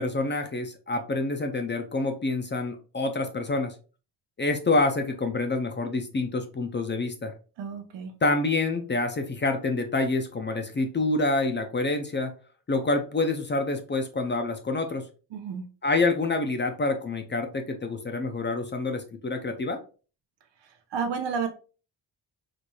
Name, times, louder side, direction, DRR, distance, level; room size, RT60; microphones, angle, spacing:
voice 1, 0.0-3.7 4.4-7.3 8.2-12.3 12.7-15.0 15.8-19.8, left 2 dB, 25° left, 0.4 m, -27 dB
voice 2, 7.6-8.1 15.3-15.7 20.9-21.5, right 6 dB, 80° right, 0.8 m, -31 dB
4.1 x 3.2 x 2.2 m
wide cardioid pair, 130°, 43 cm